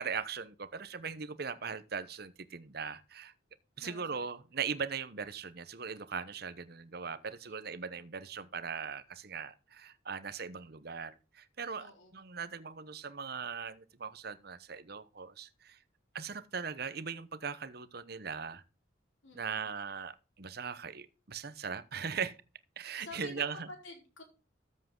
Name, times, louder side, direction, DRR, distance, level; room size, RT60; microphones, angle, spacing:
voice 1, 0.0-3.3 3.8-15.8 16.1-18.6 19.3-22.4 22.8-23.7, right 6 dB, 55° right, 0.9 m, -39 dB
voice 2, 3.8-4.2 7.4-8.0 11.8-12.3 19.2-19.7 22.8-24.2, left 2 dB, 80° left, 4.2 m, -50 dB
13.5 x 7.6 x 3.8 m
head